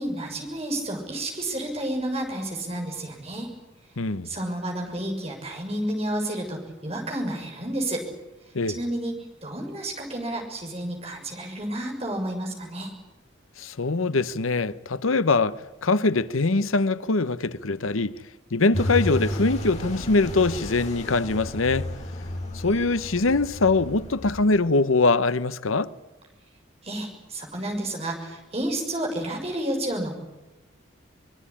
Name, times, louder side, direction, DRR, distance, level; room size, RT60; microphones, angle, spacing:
voice 1, 0.0-3.5 4.2-8.0 8.7-9.1 9.4-12.9 26.8-30.2, right 1 dB, 30° right, 6.8 m, -30 dB
voice 2, 4.0-4.3 8.5-8.8 13.6-18.2 18.5-21.9 22.5-25.9, left 3 dB, 90° left, 1.0 m, -23 dB
sound 1, 18.7-24.6, left 1 dB, 35° left, 5.3 m, -32 dB
24.5 x 22.0 x 10.0 m
head